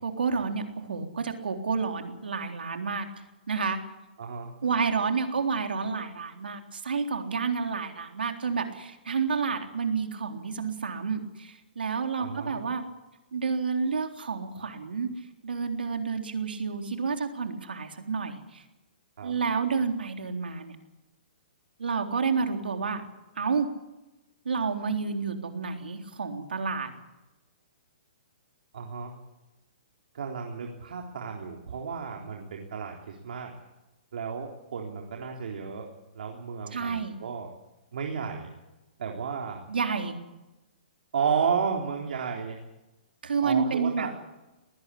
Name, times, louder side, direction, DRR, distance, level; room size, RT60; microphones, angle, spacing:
voice 1, 0.0-3.1 3.5-3.8 4.6-12.8 13.3-15.1 15.4-18.6 19.2-20.8 21.8-23.0 23.4-23.7 24.5-26.9 36.7-37.1 39.7-40.1 43.2-44.1, right 5 dB, 90° right, 5 dB, 3.7 m, -29 dB
voice 2, 4.2-4.5 12.2-12.6 19.2-19.3 28.7-29.1 30.1-33.5 34.1-35.9 36.1-37.5 37.9-38.5 39.0-39.6 41.1-42.6 43.4-44.1, right 6 dB, 70° right, 1 dB, 3.8 m, -32 dB
20.5 x 19.0 x 8.6 m, 1.0 s
hypercardioid pair, 145°, 5 cm